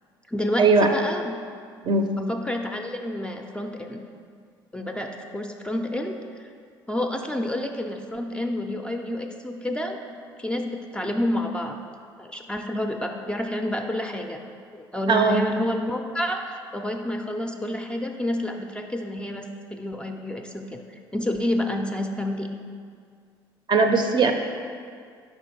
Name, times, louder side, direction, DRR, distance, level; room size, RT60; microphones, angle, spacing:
voice 1, 0.3-1.4 2.1-4.0 4.7-6.5 6.9-10.0 10.4-11.8 12.2-14.4 14.7-22.5, left 1 dB, 10° left, 3 dB, 0.4 m, -29 dB
voice 2, 15.1-15.4 23.7-24.3, right 4 dB, 40° right, 5 dB, 0.6 m, -19 dB
4.9 x 4.2 x 4.6 m, 2.1 s
hypercardioid pair, 55°, 12 cm